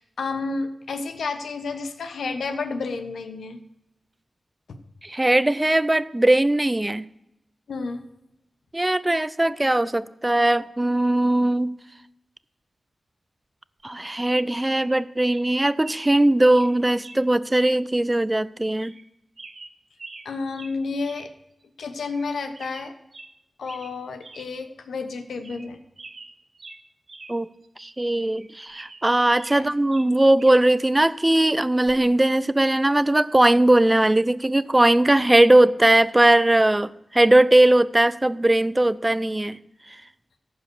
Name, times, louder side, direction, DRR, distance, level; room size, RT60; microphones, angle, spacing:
voice 1, 0.0-3.6 4.7-4.8 7.7-8.0 20.2-21.3 21.8-22.9 23.6-25.8 29.5-29.7, left 4 dB, 85° left, 8 dB, 1.0 m, -31 dB
voice 2, 5.0-7.0 8.7-11.7 13.8-18.9 27.3-27.5 27.8-39.6, right 1 dB, 25° right, 18 dB, 0.5 m, -19 dB
sound 1, 14.7-15.0 15.3-15.5 15.8-16.1 16.4-16.7 17.0-17.2 17.5-17.8 18.1-18.2 18.8-19.1 19.4-20.3 20.5-20.8 21.0-21.3 21.6-21.7 22.0-22.3 22.5-23.3 23.7-23.9 24.2-24.5 24.8-24.9 25.3-25.7 26.0-27.3 27.6-27.7 28.3-29.6 29.9-30.7 31.9-32.1, right 3 dB, 60° right, 1.2 m, -44 dB
14.5 x 5.5 x 6.1 m, 0.87 s
cardioid pair, 40°, 0 cm